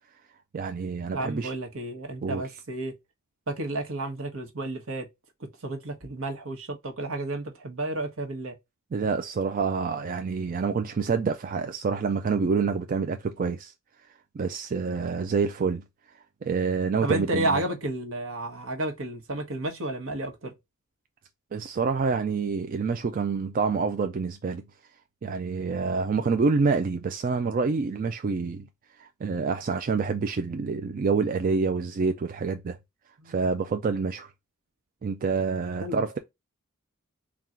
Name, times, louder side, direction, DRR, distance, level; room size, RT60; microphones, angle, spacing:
voice 1, 0.5-1.5 2.2-2.4 8.9-13.7 14.3-15.8 16.4-17.6 21.5-24.6 25.2-28.7 29.0-32.8 33.3-34.3 35.0-36.2, right 4 dB, 40° right, 0.3 m, -27 dB
voice 2, 1.1-2.9 3.5-5.1 5.6-8.5 17.0-20.5 33.2-33.4 35.8-36.0, right 2 dB, 70° right, 1.1 m, -31 dB
3.7 x 2.4 x 4.2 m
head